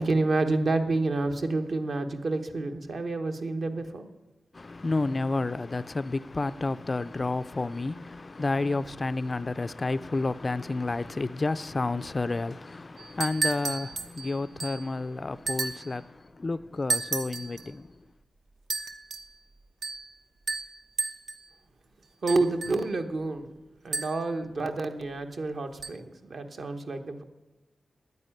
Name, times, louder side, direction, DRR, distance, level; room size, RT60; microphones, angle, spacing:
voice 1, 0.0-4.1 22.2-23.5 23.8-27.2, right 3 dB, 65° right, 1.2 m, -29 dB
voice 2, 4.5-18.0, left 3 dB, 30° left, 0.3 m, -30 dB
sound 1, 13.0-14.9 15.5-16.0 16.9-17.7 18.7-19.3 19.8-20.1 20.5-21.5 22.3-23.0 23.9-24.4 25.8-25.9, right 4 dB, 80° right, 0.9 m, -33 dB
9.6 x 9.6 x 9.0 m
wide cardioid pair, 125°, 0 cm